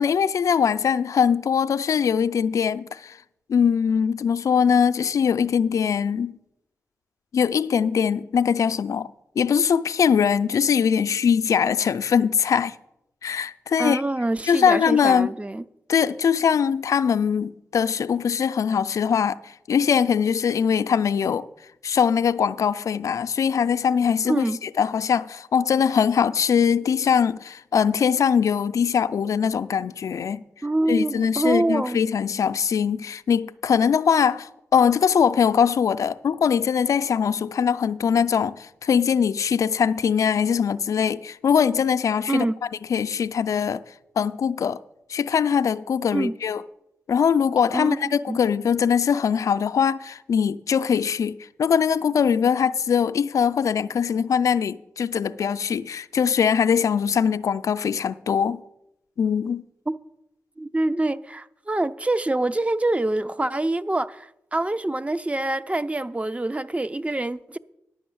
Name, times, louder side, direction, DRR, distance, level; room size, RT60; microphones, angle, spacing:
voice 1, 0.0-3.2 3.5-6.4 7.3-9.1 9.4-12.8 13.2-14.0 14.5-15.3 15.9-21.5 21.8-30.4 30.9-42.5 42.9-43.8 44.2-44.8 45.1-46.6 47.1-58.6 59.2-59.6, left 7 dB, 70° left, 0.4 m, -22 dB
voice 2, 13.8-15.6 24.2-24.6 30.6-32.0 42.3-42.6 46.1-46.4 47.7-48.4 59.9-60.0 60.6-67.6, right 2 dB, 20° right, 0.5 m, -25 dB
10.5 x 5.4 x 7.8 m
cardioid pair, 45°, 6 cm